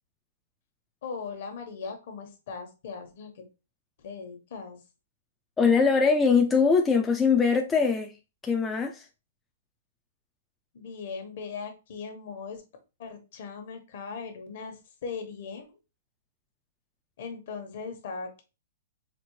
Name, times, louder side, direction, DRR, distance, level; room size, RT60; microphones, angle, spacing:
voice 1, 1.0-3.4 4.0-4.8 10.7-12.6 13.0-15.7 17.2-18.4, left 5 dB, 60° left, 1.1 m, -39 dB
voice 2, 5.6-8.1 8.4-9.1, left 5 dB, 10° left, 0.3 m, -22 dB
4.2 x 2.0 x 3.0 m
hypercardioid pair, 150°, 0 cm